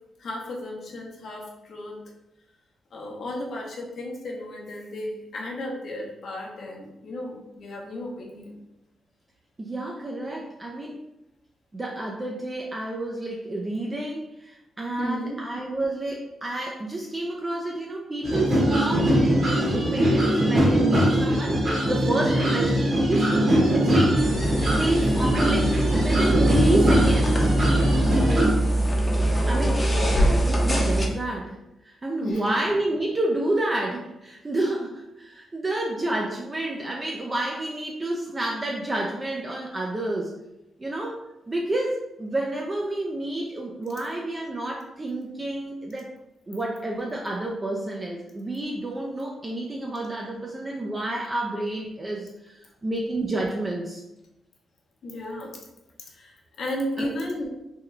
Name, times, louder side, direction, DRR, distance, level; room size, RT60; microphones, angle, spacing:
voice 1, 0.2-2.0 2.9-8.5 15.0-15.4 28.0-28.5 32.2-32.5 55.0-55.5 56.1-57.5, left 1 dB, 65° left, -1 dB, 0.8 m, -34 dB
voice 2, 9.6-11.0 11.7-19.4 19.7-24.2 24.7-27.5 29.5-29.8 30.3-31.6 31.8-40.3 40.8-46.1 46.5-54.0 57.0-57.1, right 1 dB, 25° right, -1 dB, 0.4 m, -29 dB
sound 1, 18.2-28.5, right 1 dB, 50° right, 1.3 m, -21 dB
sound 2, 24.2-31.1, right 1 dB, 15° left, 0.7 m, -23 dB
3.5 x 2.3 x 3.1 m, 0.91 s
cardioid pair, 95°, 0 cm